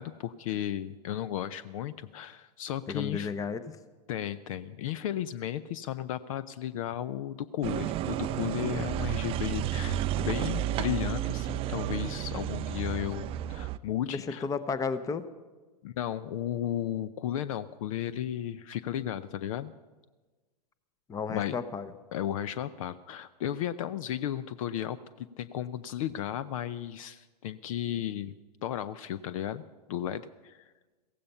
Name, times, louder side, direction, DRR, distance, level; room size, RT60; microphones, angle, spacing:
voice 1, 0.0-3.3 4.1-14.5 15.8-19.7 21.3-21.6 22.1-28.3 28.6-30.7, left 11 dB, 55° left, 16 dB, 0.6 m, -34 dB
voice 2, 2.9-3.7 14.1-15.3 21.1-21.9, left 5 dB, 15° left, 13 dB, 0.8 m, -33 dB
sound 1, 7.6-13.8, right 11 dB, 25° right, 0.4 m, -32 dB
16.0 x 15.5 x 5.6 m, 1.3 s
hypercardioid pair, 105°, 21 cm